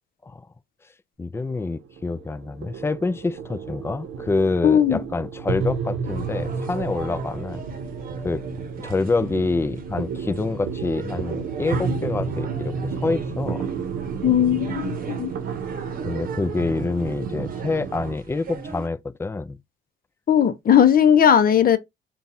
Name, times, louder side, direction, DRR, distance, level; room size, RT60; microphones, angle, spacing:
voice 1, 1.2-7.6 8.2-8.4 8.8-13.7 16.0-19.6, left 3 dB, 10° left, 0.4 m, -26 dB
sound 1, 1.3-18.1, right 5 dB, 75° right, 0.7 m, -31 dB
voice 2, 4.6-5.0 14.2-15.3 20.3-21.8, left 9 dB, 45° left, 0.7 m, -17 dB
sound 2, 6.0-18.9, right 5 dB, 45° right, 0.9 m, -39 dB
3.9 x 2.3 x 4.1 m
cardioid pair, 90°, 20 cm